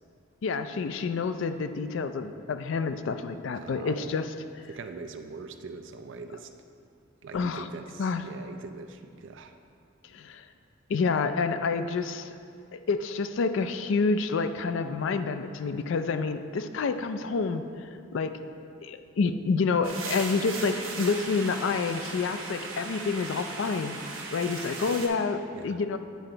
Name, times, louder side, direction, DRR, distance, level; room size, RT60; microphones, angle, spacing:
voice 1, 0.4-4.3 7.3-7.7 8.0-8.2 10.1-10.5 10.9-12.4 12.7-18.4 18.8-24.0 24.3-26.0, left 4 dB, 65° left, 10 dB, 0.4 m, -28 dB
voice 2, 3.6-4.1 4.7-6.5 7.2-9.5 25.5-25.8, right 4 dB, 65° right, 7 dB, 0.4 m, -42 dB
sound 1, 19.8-25.1, right 3 dB, 80° right, 1.0 m, -37 dB
9.3 x 4.5 x 3.8 m, 2.4 s
head